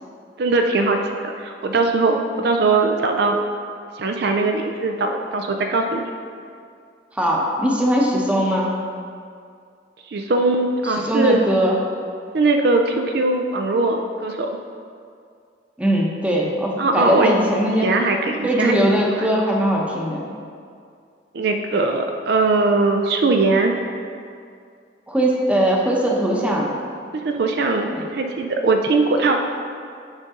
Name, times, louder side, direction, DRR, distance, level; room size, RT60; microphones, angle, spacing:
voice 1, 0.4-3.4 4.0-6.1 10.1-11.4 12.3-14.5 16.8-17.3 17.8-18.8 21.3-23.7 27.1-29.4, right 3 dB, 65° right, 4 dB, 0.5 m, -20 dB
voice 2, 7.1-8.7 10.8-11.8 15.8-18.0 18.4-20.3 25.1-26.7 27.9-28.0, equal, 5° right, -2 dB, 0.8 m, -20 dB
8.2 x 5.2 x 3.7 m, 2.3 s
head